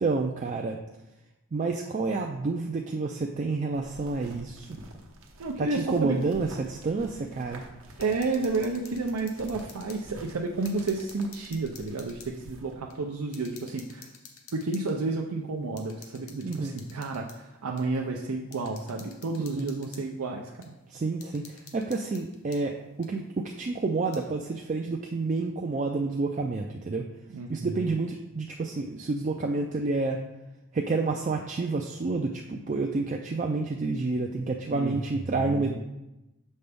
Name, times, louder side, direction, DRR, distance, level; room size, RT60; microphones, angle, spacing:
voice 1, 0.0-0.8 1.5-4.8 5.6-7.6 16.4-16.8 19.5-19.7 20.9-27.0 27.5-30.2 30.7-35.8, right 3 dB, 35° right, 2 dB, 0.3 m, -29 dB
sound 1, 3.7-12.7, right 1 dB, 65° right, 0.9 m, -48 dB
voice 2, 5.4-6.2 8.0-14.1 14.5-20.5 27.3-27.9 34.7-35.8, right 3 dB, 90° right, 0 dB, 0.5 m, -31 dB
sound 2, 7.9-10.0 10.3-12.3 12.9-13.0 13.3-15.0 15.8-17.4 17.8-17.9 18.5-20.1 20.6-20.7 21.2-22.6 23.0-23.1 23.9-24.2, left 6 dB, 75° left, 0.9 m, -50 dB
6.8 x 5.3 x 3.4 m, 0.97 s
head